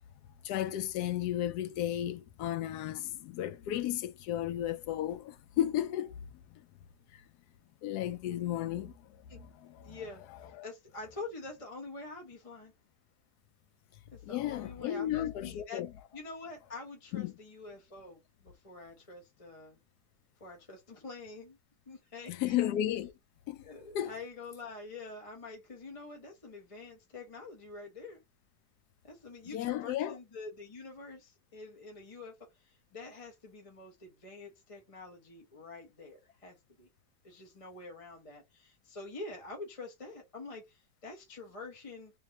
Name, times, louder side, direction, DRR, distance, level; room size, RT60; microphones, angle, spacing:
voice 1, 0.4-6.1 6.5-6.6 7.1-7.2 7.8-8.9 9.4-10.0 10.5-10.7 14.2-15.9 17.1-17.3 22.3-23.1 23.5-23.6 23.9-24.1 29.5-30.2, left 12 dB, 75° left, 1.1 m, -34 dB
voice 2, 9.8-10.2 10.6-12.7 14.1-15.8 16.1-19.8 20.4-21.6 21.9-22.6 23.6-28.2 29.0-36.9 37.2-42.1, left 3 dB, 25° left, 0.9 m, -46 dB
3.3 x 3.0 x 2.9 m
omnidirectional pair, 1.8 m